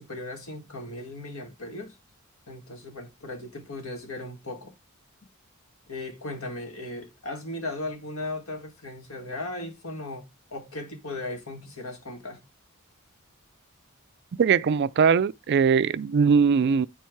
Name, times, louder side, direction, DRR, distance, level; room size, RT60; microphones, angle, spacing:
voice 1, 0.0-2.0 2.5-4.8 5.9-12.4, left 2 dB, 70° left, 1.8 m, -37 dB
voice 2, 14.4-16.9, right 6 dB, 50° right, 0.4 m, -21 dB
9.2 x 4.5 x 4.6 m
head